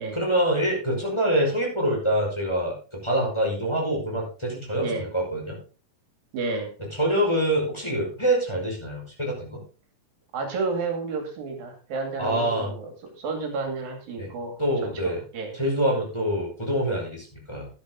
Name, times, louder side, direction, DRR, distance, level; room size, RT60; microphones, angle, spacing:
voice 1, 0.1-5.6 6.9-9.6 12.2-12.7 14.2-14.3 14.6-15.2 15.5-17.7, right 1 dB, 5° left, -2 dB, 5.0 m, -25 dB
voice 2, 6.3-6.7 10.3-15.5, right 4 dB, 75° right, 4 dB, 4.0 m, -31 dB
12.0 x 10.5 x 3.8 m, 0.35 s
omnidirectional pair, 4.2 m